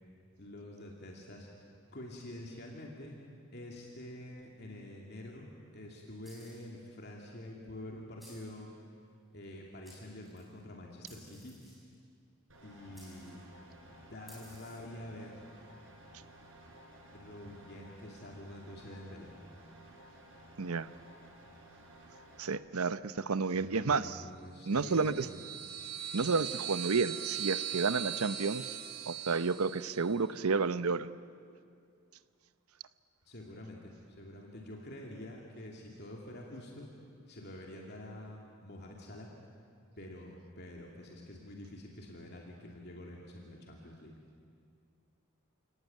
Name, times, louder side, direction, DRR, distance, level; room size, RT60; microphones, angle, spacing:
voice 1, 0.4-1.5 1.9-3.2 3.5-8.7 9.3-11.6 12.6-13.4 13.9-15.3 17.1-19.3 23.5-25.4 33.2-36.9 37.3-39.3 40.0-44.2, left 1 dB, 50° left, -1 dB, 2.7 m, -47 dB
sound 1, 6.2-6.8 8.2-8.6 9.4-9.5 9.8-10.5 11.1-11.9 12.9-13.4 14.3-15.0, equal, ahead, 6.9 m, -57 dB
sound 2, 12.5-22.5, right 1 dB, 65° right, 5.1 m, -55 dB
voice 2, 22.4-24.2 24.7-25.3 26.1-28.8 29.1-31.1, right 4 dB, 85° right, 14 dB, 0.8 m, -31 dB
sound 3, 24.7-30.1, right 10 dB, 45° right, 1.4 m, -40 dB
29.0 x 18.0 x 9.4 m, 2.3 s
head